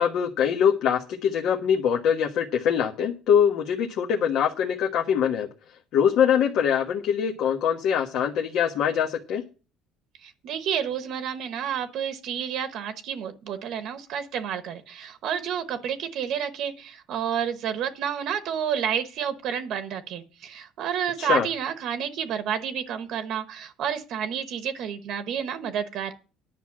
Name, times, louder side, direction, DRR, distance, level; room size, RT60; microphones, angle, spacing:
voice 1, 0.0-5.5 5.9-9.4 21.2-21.5, left 8 dB, 50° left, 2 dB, 1.2 m, -23 dB
voice 2, 10.2-26.1, right 8 dB, 50° right, 9 dB, 1.1 m, -30 dB
10.5 x 6.1 x 7.5 m, 0.33 s
cardioid pair, 165°, 0 cm